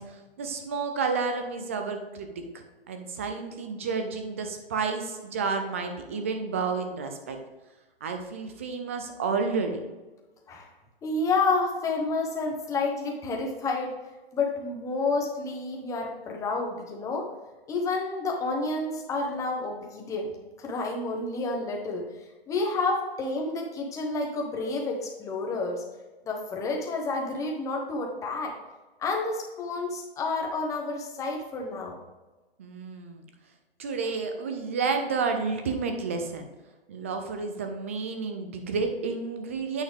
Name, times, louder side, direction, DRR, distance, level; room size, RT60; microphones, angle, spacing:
voice 1, 0.0-2.3 2.9-7.4 8.0-9.8 32.6-33.3 33.8-36.5 36.9-39.8, right 4 dB, 15° right, 6 dB, 0.3 m, -30 dB
voice 2, 11.0-13.9 14.3-17.3 17.7-20.3 20.6-22.1 22.5-25.8 26.2-28.5 29.0-32.0, left 3 dB, 10° left, 1 dB, 1.0 m, -29 dB
8.8 x 5.5 x 3.4 m, 1.2 s
hypercardioid pair, 145°, 31 cm